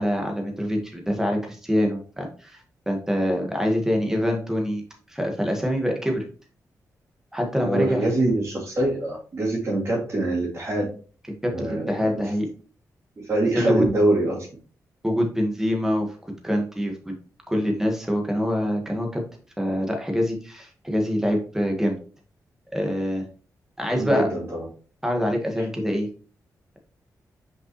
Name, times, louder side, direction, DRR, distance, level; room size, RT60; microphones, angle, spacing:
voice 1, 0.0-4.8 5.1-6.3 7.3-8.0 11.3-12.5 13.5-13.9 15.0-16.1 16.4-17.1 17.5-19.2 19.6-21.9 22.7-23.2 23.8-24.3 25.0-26.1, equal, 5° right, 2 dB, 1.7 m, -25 dB
voice 2, 7.6-10.9 11.5-11.9 13.2-14.5 24.0-24.7, right 2 dB, 40° right, -8 dB, 2.6 m, -24 dB
5.8 x 5.4 x 3.1 m, 0.39 s
wide cardioid pair, 115°, 6 cm